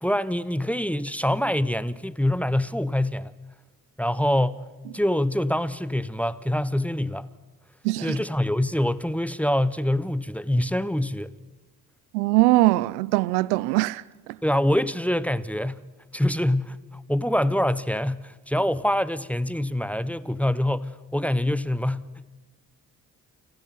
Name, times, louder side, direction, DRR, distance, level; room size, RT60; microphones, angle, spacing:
voice 1, 0.0-3.3 4.0-4.6 4.9-7.3 8.0-11.3 14.4-15.8 16.1-22.3, left 1 dB, 5° left, 1.0 m, -25 dB
voice 2, 7.8-8.2 12.1-14.0, right 19 dB, 85° right, 0.6 m, -21 dB
29.0 x 10.5 x 9.4 m
hypercardioid pair, 40°, 46 cm